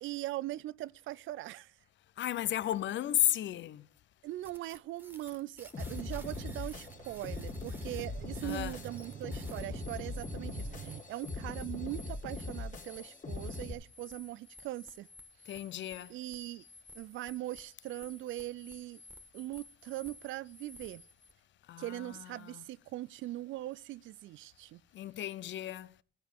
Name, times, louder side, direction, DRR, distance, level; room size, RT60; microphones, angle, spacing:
voice 1, 0.0-1.7 4.2-15.1 16.1-16.6 16.9-19.0 19.3-21.0 21.8-24.8, right 16 dB, 75° right, 0.4 m, -41 dB
voice 2, 2.2-3.9 8.4-8.8 15.5-16.2 21.7-22.6 24.9-25.9, left 12 dB, 70° left, 0.7 m, -34 dB
sound 1, 4.4-21.3, left 1 dB, 10° right, 1.8 m, -54 dB
sound 2, 5.7-13.7, left 3 dB, 40° left, 2.6 m, -41 dB
sound 3, 5.9-11.0, right 8 dB, 55° right, 1.0 m, -48 dB
14.5 x 5.1 x 7.5 m
cardioid pair, 90°, 20 cm